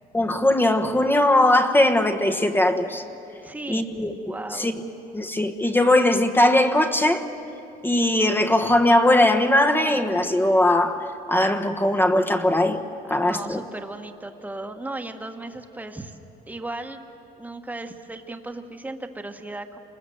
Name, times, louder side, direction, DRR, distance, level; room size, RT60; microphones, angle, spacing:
voice 1, 0.1-3.0 3.7-4.1 4.5-4.8 5.1-7.3 7.8-12.8 13.1-13.6, left 1 dB, 10° left, 1.3 m, -20 dB
voice 2, 3.4-3.9 4.2-4.7 13.1-16.2 16.5-17.0 17.4-19.8, right 2 dB, 10° right, 1.4 m, -36 dB
27.5 x 20.5 x 7.9 m
cardioid pair, 110°, 17 cm